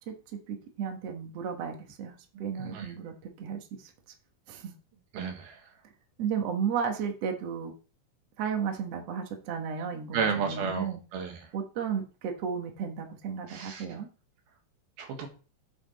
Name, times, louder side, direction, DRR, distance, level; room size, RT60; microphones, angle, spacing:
voice 1, 0.5-3.9 4.5-4.7 6.2-7.7 8.4-11.0 11.5-14.1, right 7 dB, 55° right, 2.2 m, -34 dB
voice 2, 5.1-5.6 10.1-11.4 13.5-13.9 15.0-15.3, right 6 dB, 90° right, 3.5 m, -32 dB
8.6 x 6.1 x 4.3 m
omnidirectional pair, 4.2 m